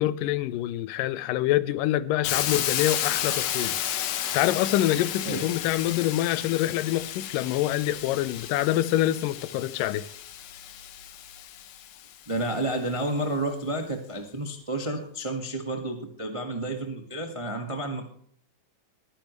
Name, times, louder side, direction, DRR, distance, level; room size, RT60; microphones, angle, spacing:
voice 1, 0.0-3.8 4.1-10.1, left 14 dB, 90° left, 2.3 m, -26 dB
Hiss, 2.2-12.1, left 11 dB, 65° left, 1.9 m, -32 dB
voice 2, 12.3-18.0, right 1 dB, 30° right, 0.5 m, -30 dB
22.0 x 10.0 x 3.2 m
omnidirectional pair, 3.8 m